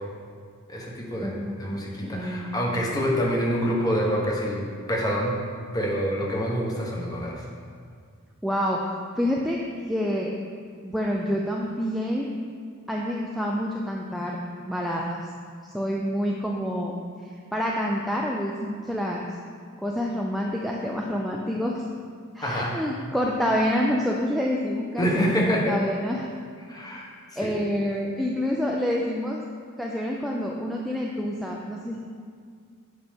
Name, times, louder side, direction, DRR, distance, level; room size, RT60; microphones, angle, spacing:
voice 1, 0.7-5.4 5.7-7.4 22.4-22.7 25.0-25.7 26.7-27.1 27.3-27.5, equal, 15° left, -2 dB, 1.0 m, -26 dB
voice 2, 1.2-2.7 8.4-9.6 9.9-10.3 10.8-12.3 12.9-14.4 14.7-15.3 15.7-16.9 17.2-19.3 19.8-21.8 22.3-26.2 26.9-27.0 27.4-29.4 29.8-32.0, equal, ahead, -3 dB, 0.3 m, -28 dB
7.9 x 5.4 x 3.6 m, 2.1 s
head